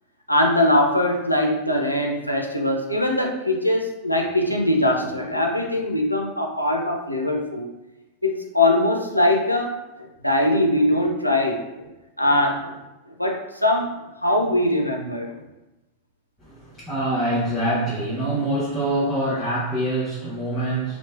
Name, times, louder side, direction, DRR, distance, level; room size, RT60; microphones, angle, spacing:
voice 1, 0.3-7.7 8.2-11.9 12.2-12.8 13.2-13.9 14.2-15.4, left 1 dB, 90° left, 1 dB, 0.3 m, -22 dB
voice 2, 16.4-21.0, right 1 dB, 10° left, -11 dB, 0.8 m, -25 dB
3.0 x 2.0 x 2.3 m, 1.0 s
figure-of-eight pair, 90°, 0 cm